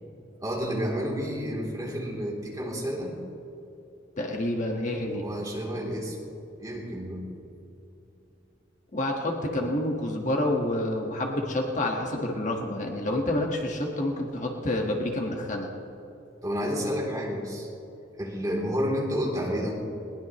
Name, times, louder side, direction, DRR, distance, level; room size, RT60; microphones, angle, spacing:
voice 1, 0.4-3.2 5.1-6.2 6.6-7.3 16.4-17.7 18.1-19.7, equal, 20° right, -4 dB, 3.2 m, -30 dB
voice 2, 4.2-5.2 8.9-15.7, left 1 dB, 40° left, 0 dB, 1.6 m, -28 dB
21.0 x 20.0 x 3.1 m, 2.8 s
head